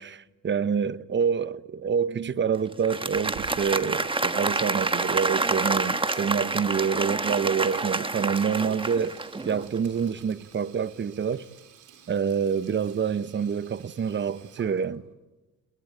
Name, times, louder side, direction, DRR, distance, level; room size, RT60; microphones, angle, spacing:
voice 1, 0.4-9.2 9.5-11.5 12.1-15.0, right 6 dB, 40° right, 1.0 m, -27 dB
Applause, 2.7-9.7, right 3 dB, 15° right, 1.4 m, -28 dB
Sink (filling or washing), 3.2-15.1, right 7 dB, 90° right, 4.0 m, -52 dB
29.5 x 21.0 x 8.9 m
cardioid pair, 90°, 30 cm